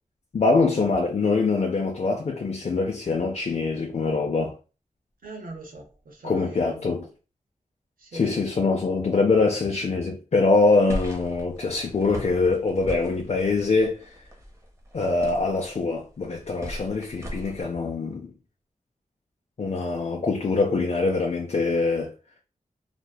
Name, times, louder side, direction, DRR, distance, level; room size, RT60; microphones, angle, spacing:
voice 1, 0.3-4.5 6.2-7.1 8.1-14.1 14.9-18.3 19.6-22.1, left 3 dB, 50° left, 0.4 m, -24 dB
voice 2, 5.2-7.0 8.0-8.4, right 2 dB, 90° right, 0.7 m, -41 dB
sound 1, 10.9-17.6, equal, 20° right, 0.8 m, -38 dB
2.7 x 2.0 x 2.2 m
wide cardioid pair, 55°, 14 cm